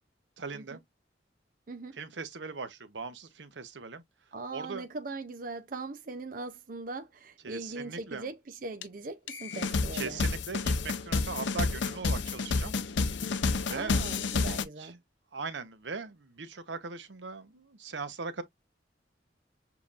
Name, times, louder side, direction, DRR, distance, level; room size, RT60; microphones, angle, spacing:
voice 1, 0.4-0.8 1.9-4.0 4.5-4.9 7.4-8.3 9.9-12.8 13.6-14.1 14.8-14.9 15.3-18.4, right 4 dB, 80° right, 0.9 m, -39 dB
voice 2, 1.7-2.0 4.3-10.2 13.7-15.0, right 3 dB, 50° right, 0.5 m, -40 dB
sound 1, 8.8-8.9 9.3-14.6, left 4 dB, 80° left, 0.6 m, -30 dB
7.0 x 2.9 x 2.4 m
head